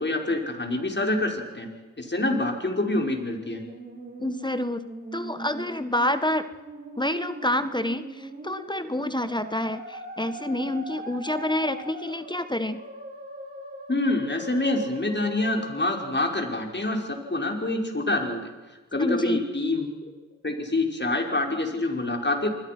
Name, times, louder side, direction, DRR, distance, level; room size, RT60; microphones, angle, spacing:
voice 1, 0.0-1.7 2.0-3.6 13.9-18.5 18.9-19.9 20.4-22.5, left 2 dB, 30° left, 3 dB, 5.5 m, -26 dB
Musical instrument, 3.2-16.2, right 1 dB, 25° right, 7.8 m, -41 dB
voice 2, 4.2-4.8 5.1-6.4 7.0-12.8 19.0-19.4, left 1 dB, 15° left, 11 dB, 1.6 m, -28 dB
28.0 x 20.5 x 6.2 m, 1.2 s
cardioid pair, 45°, 33 cm